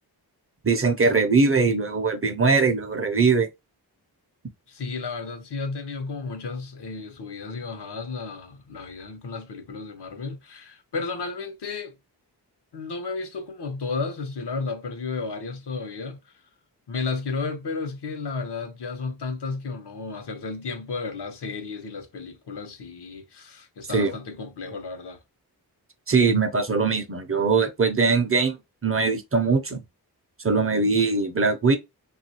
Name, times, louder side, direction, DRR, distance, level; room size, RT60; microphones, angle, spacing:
voice 1, 0.6-3.5 23.9-24.1 26.1-28.6 28.8-29.8 30.4-31.8, right 4 dB, 35° right, 0.5 m, -21 dB
voice 2, 4.7-11.9 12.7-16.3 16.9-25.2, left 4 dB, 75° left, 0.8 m, -33 dB
3.1 x 2.4 x 2.7 m
wide cardioid pair, 110°, 41 cm